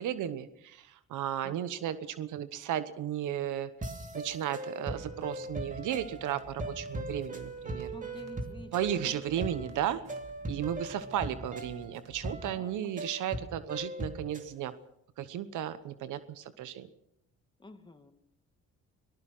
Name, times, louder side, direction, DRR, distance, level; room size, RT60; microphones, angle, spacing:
voice 1, 0.0-3.7 4.1-7.9 8.7-10.0 10.5-14.7 15.2-16.9, right 11 dB, 80° right, 13 dB, 1.1 m, -34 dB
voice 2, 1.4-1.9 7.9-9.1 12.4-13.1 17.6-18.1, left 2 dB, 15° left, 7 dB, 2.2 m, -50 dB
sound 1, 3.8-14.5, right 1 dB, 25° right, 2.9 m, -40 dB
sound 2, 5.0-12.5, right 3 dB, 55° right, 3.3 m, -54 dB
23.0 x 19.0 x 6.1 m, 0.78 s
cardioid pair, 90°, 30 cm